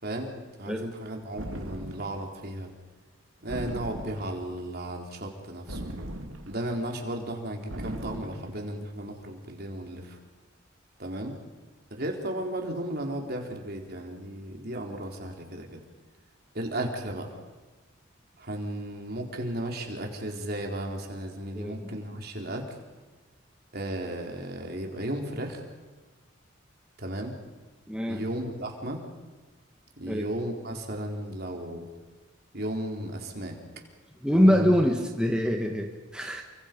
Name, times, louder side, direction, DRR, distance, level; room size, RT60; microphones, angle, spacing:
voice 1, 0.0-0.3 0.6-2.7 3.4-5.9 6.5-10.2 11.0-11.4 11.9-15.8 16.5-17.3 18.4-22.6 23.7-25.6 27.0-27.3 28.1-29.0 30.0-31.9 32.5-33.6 34.4-34.7, right 1 dB, 50° right, 2 dB, 4.0 m, -34 dB
sound 1, 1.4-2.2 3.5-4.5 5.7-6.7 7.7-8.6, right 1 dB, 85° right, 2.7 m, -38 dB
voice 2, 21.5-22.0 27.9-28.2 30.1-30.2 34.2-36.4, equal, 5° right, 1 dB, 1.6 m, -24 dB
29.5 x 24.5 x 5.4 m, 1.3 s
head